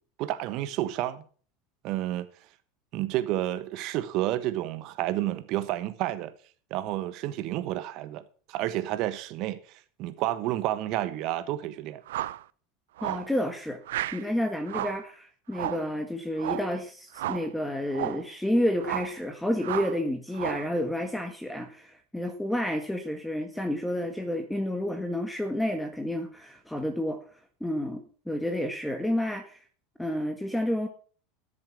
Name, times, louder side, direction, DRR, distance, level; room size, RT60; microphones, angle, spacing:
voice 1, 0.2-1.2 1.8-2.3 2.9-6.3 6.7-8.2 8.5-9.6 10.0-12.0, right 14 dB, 55° right, 1.2 m, -30 dB
sound 1, 12.1-12.4 13.0-13.3 13.9-14.2 14.7-15.0 15.5-15.9 16.4-16.7 17.1-17.5 17.9-18.3 18.8-19.2 19.6-20.0 20.3-20.7, right 14 dB, 75° right, 0.5 m, -33 dB
voice 2, 13.0-13.8 14.1-27.2 27.6-29.6 30.0-30.9, left 1 dB, 5° left, 1.7 m, -30 dB
13.0 x 7.3 x 6.1 m
hypercardioid pair, 90°, 0 cm